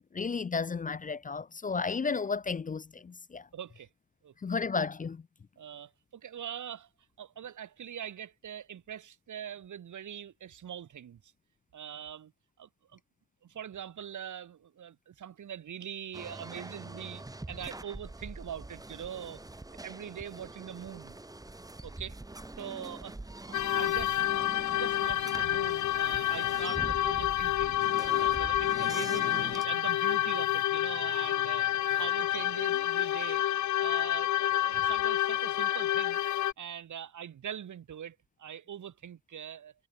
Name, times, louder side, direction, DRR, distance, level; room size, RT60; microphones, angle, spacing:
voice 1, 0.0-3.5 4.4-5.2, left 5 dB, 25° left, 0.6 m, -33 dB
voice 2, 3.5-3.9 4.2-4.3 5.6-6.9 7.2-11.3 11.7-12.3 12.6-13.0 13.4-19.5 19.8-21.2 21.8-22.1 22.6-23.2 23.5-27.8 28.2-36.2 36.6-39.7, right 9 dB, 80° right, 3.2 m, -43 dB
sound 1, 16.1-29.7, right 2 dB, 10° right, 2.7 m, -44 dB
sound 2, 23.5-36.5, left 13 dB, 80° left, 0.5 m, -29 dB
wide cardioid pair, 170°, 29 cm